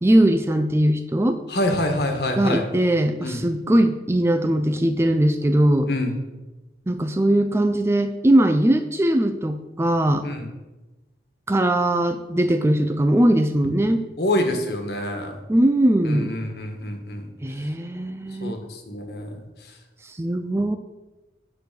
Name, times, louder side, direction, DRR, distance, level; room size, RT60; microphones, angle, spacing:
voice 1, 0.0-1.4 2.4-5.9 6.9-10.3 11.5-14.0 15.5-16.3 17.4-18.5 20.0-20.8, right 1 dB, 15° right, 8 dB, 0.4 m, -20 dB
voice 2, 1.5-2.6 3.2-3.4 5.9-6.1 10.2-10.4 14.2-15.3 16.0-17.3 18.4-19.4, left 1 dB, 65° left, 4 dB, 1.5 m, -26 dB
9.0 x 4.7 x 6.8 m, 1.1 s
head